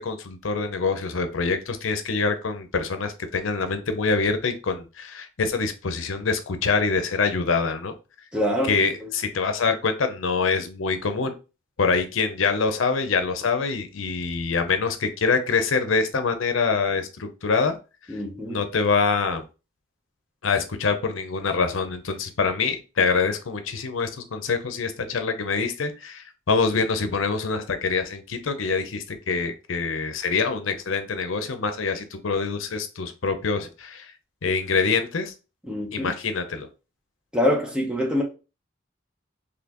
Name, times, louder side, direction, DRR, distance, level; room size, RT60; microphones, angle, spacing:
voice 1, 0.0-7.9 8.7-11.3 11.8-17.8 18.1-18.2 18.5-19.4 20.4-34.1 34.4-35.3 35.9-36.7, left 4 dB, 85° left, 0.6 m, -25 dB
voice 2, 8.3-8.8 9.0-9.1 18.1-18.6 35.6-36.1 37.3-38.2, left 1 dB, 5° right, 0.7 m, -25 dB
4.2 x 2.9 x 2.9 m
head